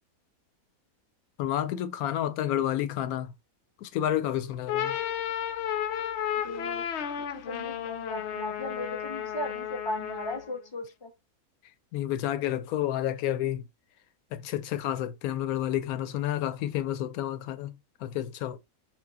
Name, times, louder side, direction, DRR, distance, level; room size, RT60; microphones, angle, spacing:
voice 1, 1.4-3.3 3.8-5.0 11.9-13.6 14.3-18.6, left 12 dB, 85° left, 1.0 m, -30 dB
sound 1, 4.5-10.5, left 10 dB, 65° left, 0.7 m, -33 dB
voice 2, 6.4-6.8 7.2-11.1, left 1 dB, 35° left, 0.4 m, -37 dB
4.4 x 2.4 x 4.0 m
omnidirectional pair, 1.5 m